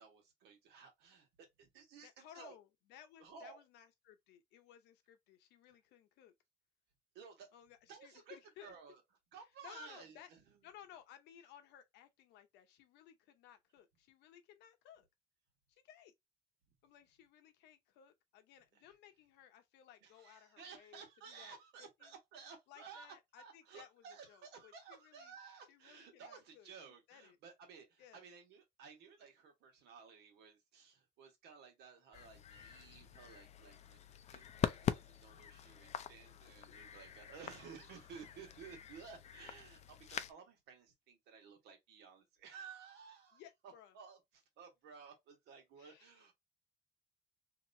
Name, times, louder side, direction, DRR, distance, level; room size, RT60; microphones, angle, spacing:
voice 1, 0.0-2.5 3.2-3.6 7.1-7.5 7.9-8.4 8.6-9.0 9.3-10.4 20.0-34.0 34.3-46.3, right 6 dB, 85° right, 1.5 m, -55 dB
voice 2, 1.9-6.3 7.5-8.7 9.3-10.3 10.6-15.1 15.7-16.1 16.8-22.1 22.7-25.4 25.7-27.4 28.0-28.2 36.3-36.8 39.3-39.4 43.3-44.0 45.8-46.2, left 10 dB, 90° left, 0.8 m, -60 dB
sound 1, 32.1-40.3, left 9 dB, 40° left, 0.4 m, -43 dB
2.9 x 2.9 x 2.6 m
cardioid pair, 110°, 17 cm